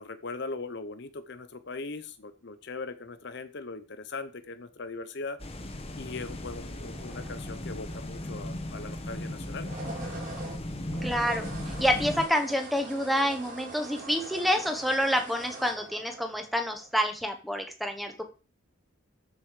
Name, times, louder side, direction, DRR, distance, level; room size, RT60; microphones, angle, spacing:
voice 1, 0.0-5.4 6.0-9.7, left 3 dB, 55° left, 11 dB, 0.8 m, -39 dB
sound 1, 5.4-12.3, left 1 dB, 30° left, 1.1 m, -37 dB
sound 2, 6.9-7.9 9.5-16.9, right 2 dB, 35° right, 3.9 m, -43 dB
voice 2, 11.0-11.5 11.8-18.2, equal, ahead, 5 dB, 1.3 m, -28 dB
13.0 x 5.4 x 4.9 m, 0.35 s
head